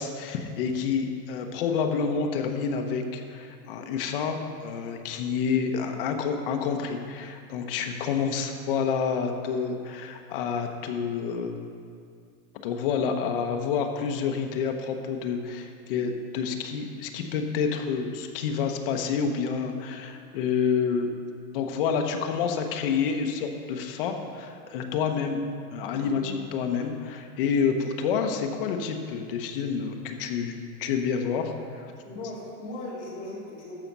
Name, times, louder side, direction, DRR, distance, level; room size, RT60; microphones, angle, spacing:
voice 1, 0.0-4.4 4.6-11.6 12.6-21.1 21.5-25.4 25.7-30.5 30.8-31.9, left 6 dB, 40° left, 4 dB, 0.9 m, -28 dB
voice 2, 26.0-26.3 32.0-33.8, left 1 dB, 20° left, -7 dB, 2.6 m, -38 dB
13.5 x 5.7 x 5.3 m, 2.2 s
supercardioid pair, 170°, 43 cm